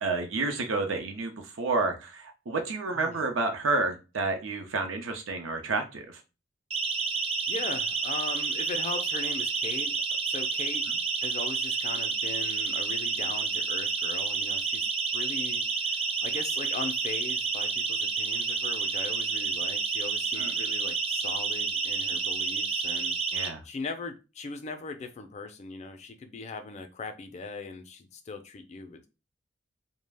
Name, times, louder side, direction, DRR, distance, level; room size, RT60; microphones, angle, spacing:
voice 1, 0.0-6.2 20.4-20.5 23.3-23.6, right 3 dB, 90° right, 5 dB, 0.6 m, -30 dB
voice 2, 2.9-3.3 7.5-9.9 10.3-10.8 11.2-23.1 23.6-29.1, left 4 dB, 35° left, 7 dB, 0.4 m, -39 dB
Siren, 6.7-23.5, right 4 dB, 30° right, 0.4 m, -30 dB
2.3 x 2.1 x 3.3 m, 0.29 s
head